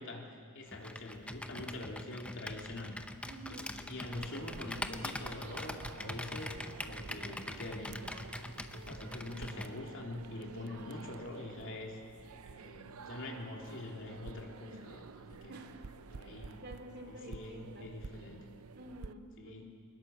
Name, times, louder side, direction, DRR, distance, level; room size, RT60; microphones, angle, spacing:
voice 1, 0.0-3.0 3.5-6.5 6.8-8.0 8.4-12.0 12.4-15.5 16.1-16.6 17.0-18.4 19.4-19.7, left 2 dB, 60° left, 0 dB, 3.2 m, -45 dB
Computer keyboard, 0.7-9.7, left 1 dB, 5° left, 0.8 m, -43 dB
voice 2, 3.2-3.8 8.7-9.0 15.5-15.8 16.2-17.9 18.7-19.6, right 1 dB, 50° right, 4 dB, 2.5 m, -50 dB
sound 1, 4.0-19.1, right 5 dB, 75° right, 0.6 m, -50 dB
23.5 x 21.0 x 7.1 m, 2.2 s
head